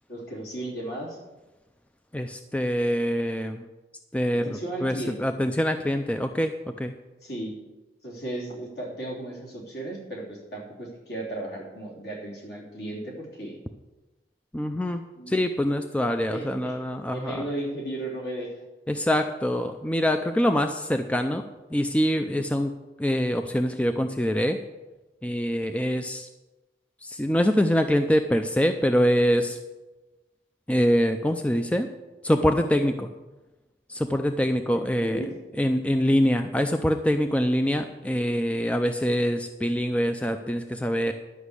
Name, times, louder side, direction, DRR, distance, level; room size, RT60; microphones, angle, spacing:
voice 1, 0.1-1.2 4.3-5.3 7.2-7.6 8.0-13.6 15.2-15.3 16.3-16.8 17.1-18.5 34.7-35.3, right 1 dB, 65° left, -3 dB, 3.3 m, -35 dB
voice 2, 2.1-3.7 4.1-6.5 6.8-6.9 14.5-17.4 18.9-21.4 21.7-22.7 23.0-24.6 25.2-26.3 27.0-29.6 30.7-31.9 32.2-33.1 33.9-35.3 35.6-41.1, equal, 10° left, 7 dB, 0.4 m, -24 dB
11.5 x 6.1 x 8.2 m, 1.1 s
head